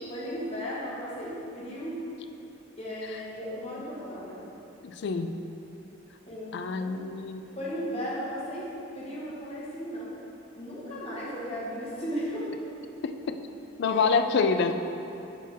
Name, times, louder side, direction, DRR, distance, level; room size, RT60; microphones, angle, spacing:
voice 1, 0.1-2.0 2.8-4.4 6.3-7.1 7.4-10.2 10.5-12.6 13.8-14.1 14.4-14.8, equal, 30° left, -7 dB, 1.5 m, -36 dB
voice 2, 4.8-5.4 6.5-7.4 13.0-13.4 13.8-14.8, left 5 dB, 55° left, 8 dB, 0.3 m, -27 dB
9.1 x 4.5 x 3.4 m, 2.8 s
head